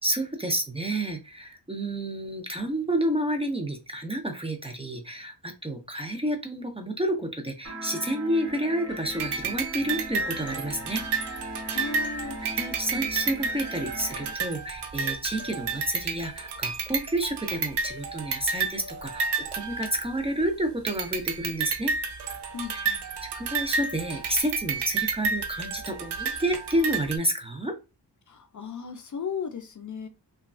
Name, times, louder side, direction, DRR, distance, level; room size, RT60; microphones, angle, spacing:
voice 1, 0.0-11.0 11.7-11.9 12.6-21.9 22.7-22.9 23.2-27.7, right 1 dB, 15° right, 0.5 m, -30 dB
sound 1, 7.6-14.3, equal, 35° right, 1.2 m, -39 dB
sound 2, 9.2-20.4 20.9-27.2, right 5 dB, 75° right, 0.6 m, -31 dB
voice 2, 11.7-12.4 22.5-23.0 28.3-30.1, left 5 dB, 45° left, 0.4 m, -36 dB
3.0 x 2.3 x 2.4 m
wide cardioid pair, 105°, 42 cm